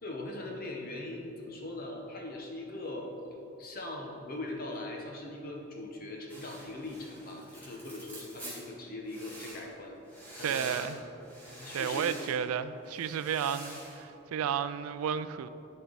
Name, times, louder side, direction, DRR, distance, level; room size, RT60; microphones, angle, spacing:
voice 1, 0.0-3.1 3.6-10.0 10.3-10.9 11.5-12.2, left 2 dB, 40° left, 0 dB, 1.0 m, -40 dB
sound 1, 6.3-8.7 9.1-9.7 10.1-11.0 11.2-12.4 12.8-14.0, right 1 dB, 10° left, 1.7 m, -46 dB
voice 2, 10.4-11.0 11.7-15.5, right 8 dB, 85° right, 13 dB, 0.3 m, -32 dB
11.5 x 4.5 x 4.0 m, 2.9 s
head